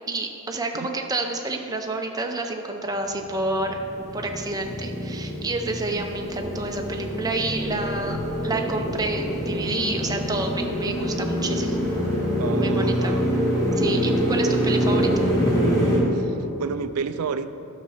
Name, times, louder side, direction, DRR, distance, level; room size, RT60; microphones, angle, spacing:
voice 1, 0.1-3.8 4.1-11.8 12.5-13.2 13.8-15.1, right 2 dB, 15° right, 3 dB, 0.7 m, -29 dB
Motorcycle, 3.3-16.0, equal, 15° left, 2.2 m, -25 dB
voice 2, 12.4-13.3 16.1-17.5, right 6 dB, 85° right, 11 dB, 0.4 m, -31 dB
11.5 x 6.6 x 5.7 m, 2.9 s
head